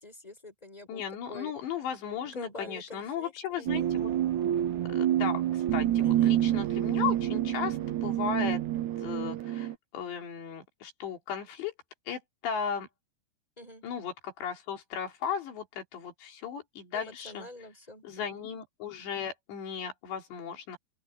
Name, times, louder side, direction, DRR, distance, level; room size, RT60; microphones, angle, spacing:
voice 1, 0.0-1.5 2.2-3.9 6.0-6.4 13.6-13.8 16.9-18.5, left 2 dB, 10° left, 6.9 m, -46 dB
voice 2, 0.9-4.1 4.9-8.6 9.0-11.7 12.1-12.9 13.8-17.5 18.0-20.8, left 7 dB, 90° left, 5.5 m, -36 dB
sound 1, 3.7-9.7, right 12 dB, 80° right, 1.7 m, -28 dB
open air
omnidirectional pair, 4.9 m